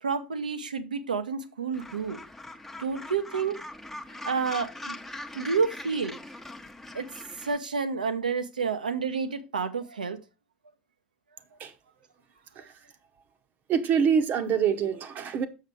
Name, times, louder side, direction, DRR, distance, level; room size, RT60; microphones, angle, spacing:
voice 1, 0.0-2.2 2.8-3.6 4.2-5.0 5.3-6.2 6.9-7.1 7.4-10.2, right 5 dB, 80° right, 0.7 m, -29 dB
Gull seagull, 1.7-7.6, left 1 dB, 5° left, 0.9 m, -42 dB
voice 2, 13.7-15.5, right 7 dB, 40° right, 0.9 m, -25 dB
6.6 x 6.5 x 4.7 m
figure-of-eight pair, 70°, 4 cm